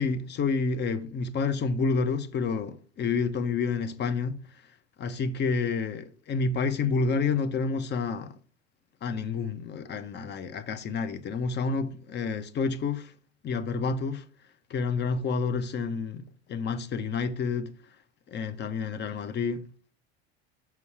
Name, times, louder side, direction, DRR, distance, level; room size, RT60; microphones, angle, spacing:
voice 1, 0.0-4.4 5.0-8.4 9.0-13.1 13.4-14.2 14.7-16.2 16.5-17.7 18.3-19.7, left 4 dB, 30° left, 0.9 m, -29 dB
6.1 x 5.4 x 4.8 m
hypercardioid pair, 90°, 33 cm